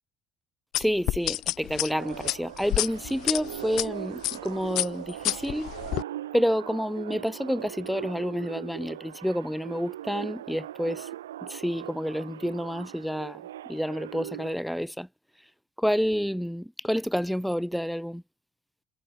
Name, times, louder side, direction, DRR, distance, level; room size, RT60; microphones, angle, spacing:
sound 1, 0.7-3.9 4.2-4.5 4.8-6.0, left 17 dB, 60° left, 0.8 m, -28 dB
voice 1, 0.8-5.7 6.3-11.1 11.4-15.1 15.8-18.2, equal, ahead, 0.5 m, -29 dB
sound 2, 1.9-14.5, right 12 dB, 75° right, 2.1 m, -40 dB
figure-of-eight pair, 55°, 0 cm